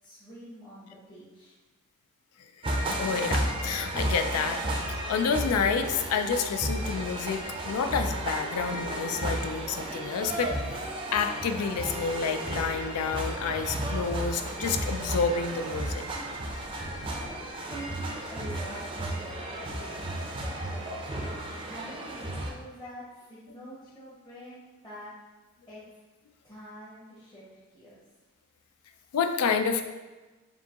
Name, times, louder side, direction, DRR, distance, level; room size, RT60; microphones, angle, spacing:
voice 1, 0.0-1.6 16.7-20.4 20.7-20.9 21.6-25.1 25.7-25.8 26.4-27.4 27.7-28.0, equal, 20° left, -9 dB, 0.8 m, -45 dB
voice 2, 2.6-4.6 4.9-10.5 11.1-16.0 29.1-29.8, left 5 dB, 90° left, 8 dB, 0.3 m, -29 dB
sound 1, 2.6-22.5, right 1 dB, 25° right, 0.4 m, -33 dB
4.4 x 2.7 x 2.9 m, 1.2 s
head